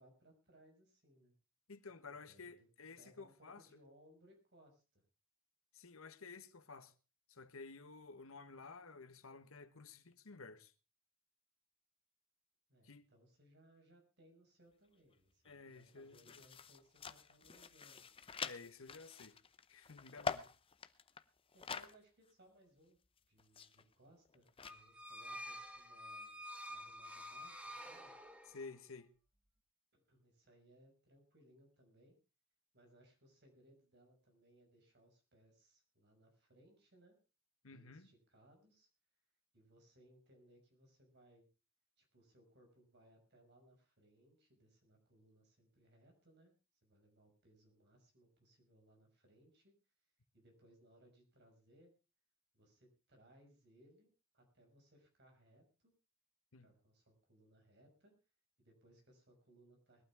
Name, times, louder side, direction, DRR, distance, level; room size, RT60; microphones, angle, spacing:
voice 1, 0.0-1.3 2.1-2.5 3.0-5.0 12.7-18.1 21.5-23.0 23.3-26.3 26.7-28.1 29.9-32.2 32.7-37.2 37.7-38.9 39.5-41.5 42.0-46.5 46.8-49.7 50.3-51.9 52.5-54.1 54.3-55.6 56.6-58.1 58.6-60.0, right 1 dB, 55° right, 6.1 m, -67 dB
voice 2, 1.7-3.6 5.7-6.9 7.3-10.7 12.8-13.1 15.4-16.4 18.4-19.4 19.7-20.5 28.5-29.1 37.6-38.1 56.5-56.7, left 4 dB, 85° left, 1.3 m, -53 dB
sound 1, 15.1-15.2 15.5-22.0 22.3-22.4 23.2-24.8, left 5 dB, 25° left, 0.7 m, -46 dB
sound 2, 24.6-28.8, equal, 5° right, 1.5 m, -49 dB
21.0 x 12.5 x 3.5 m
head